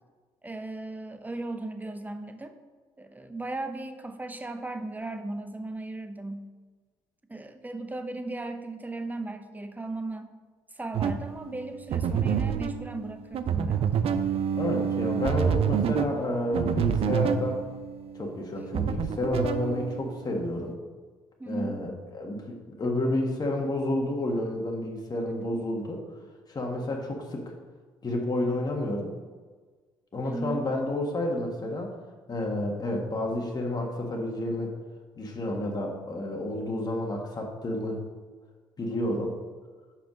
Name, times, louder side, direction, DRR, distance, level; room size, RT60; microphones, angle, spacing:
voice 1, 0.4-2.6 3.0-6.5 7.3-10.3 10.7-14.1 21.4-21.8 25.2-25.6 30.2-30.7, right 2 dB, 15° right, 8 dB, 0.9 m, -37 dB
sound 1, 10.9-20.5, right 7 dB, 55° right, 0.5 m, -28 dB
voice 2, 14.5-17.6 18.2-20.8 21.5-26.0 26.5-27.5 28.0-29.1 30.1-31.9 32.3-34.7 35.2-38.0 38.8-39.4, left 1 dB, 35° left, 0 dB, 1.6 m, -30 dB
5.6 x 5.0 x 6.1 m, 1.4 s
hypercardioid pair, 55°, 12 cm